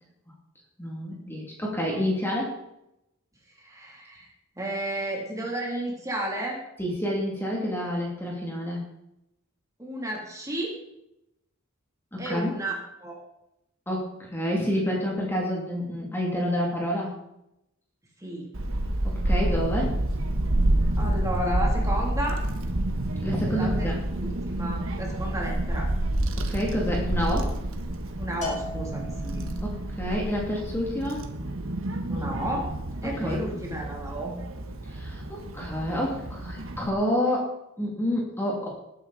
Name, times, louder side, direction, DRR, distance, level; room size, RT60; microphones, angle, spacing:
voice 1, 0.8-2.6 6.8-8.8 12.1-12.5 13.9-17.1 19.0-20.0 23.2-24.0 26.4-27.5 29.6-31.3 33.2-33.4 34.9-38.7, equal, 10° left, -2 dB, 2.7 m, -28 dB
voice 2, 3.6-4.3 4.6-6.6 9.8-10.8 12.2-13.1 18.2-18.6 21.0-22.4 23.4-25.9 28.2-29.5 32.1-32.7 33.0-34.4, right 1 dB, 15° right, -2 dB, 3.1 m, -32 dB
Child speech kid speaking / Wind, 18.5-36.9, right 1 dB, 65° right, 1.4 m, -29 dB
Bell, 28.4-29.8, left 3 dB, 35° left, 3.2 m, -37 dB
19.5 x 9.5 x 4.2 m, 0.84 s
head